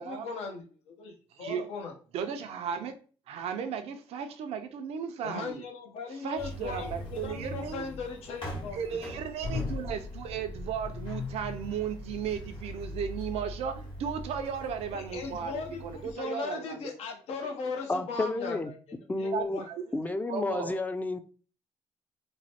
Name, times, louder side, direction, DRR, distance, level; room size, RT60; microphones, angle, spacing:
voice 1, 0.0-1.9 5.2-8.8 14.9-18.8 19.2-19.7, left 4 dB, 80° left, 0.7 m, -38 dB
voice 2, 2.1-2.9 3.3-5.7 6.2-7.9 8.7-16.8 19.3-19.9 20.3-20.8, right 7 dB, 75° right, 0.4 m, -35 dB
sound 1, 6.4-16.1, left 2 dB, 55° left, 1.4 m, -40 dB
voice 3, 17.9-18.7 19.1-19.6 19.9-21.2, left 2 dB, 15° left, 0.3 m, -31 dB
3.0 x 2.0 x 2.8 m
supercardioid pair, 65°, 10 cm